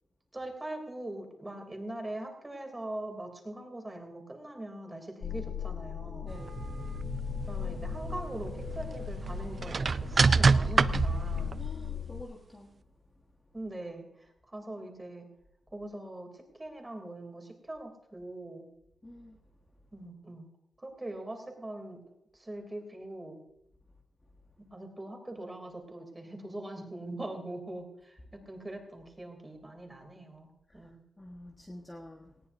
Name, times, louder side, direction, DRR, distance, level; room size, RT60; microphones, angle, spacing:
voice 1, 0.3-6.4 7.5-11.6 13.5-15.3 15.7-18.7 19.9-20.5 20.8-22.0 22.3-23.4 24.7-31.0, right 1 dB, 15° right, 3 dB, 3.0 m, -42 dB
sound 1, 5.2-12.2, left 10 dB, 60° left, 0.9 m, -38 dB
voice 2, 6.2-6.6 11.6-12.7 19.0-19.4 30.7-30.9 31.2-32.3, left 1 dB, 15° left, -1 dB, 1.4 m, -48 dB
sound 2, 6.3-11.7, right 4 dB, 35° right, 0.4 m, -28 dB
19.0 x 18.0 x 2.7 m, 0.80 s
wide cardioid pair, 160°, 0 cm